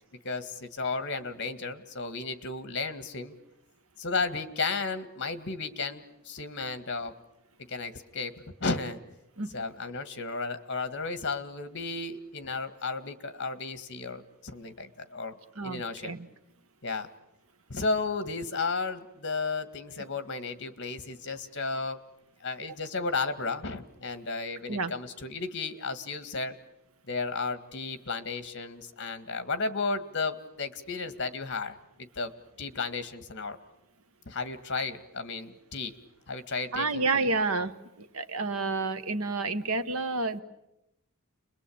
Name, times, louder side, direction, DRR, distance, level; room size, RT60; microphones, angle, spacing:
voice 1, 0.2-3.3 4.0-7.1 7.7-8.3 8.6-9.0 9.5-15.4 15.6-16.1 16.8-17.1 17.7-22.0 22.4-26.6 27.1-32.3 32.6-33.6 34.3-35.9 36.3-37.3, left 4 dB, 55° left, 11 dB, 1.9 m, -33 dB
voice 2, 15.6-16.3 24.7-24.9 36.7-40.4, right 3 dB, 75° right, 11 dB, 1.4 m, -30 dB
30.0 x 22.0 x 8.7 m, 0.89 s
head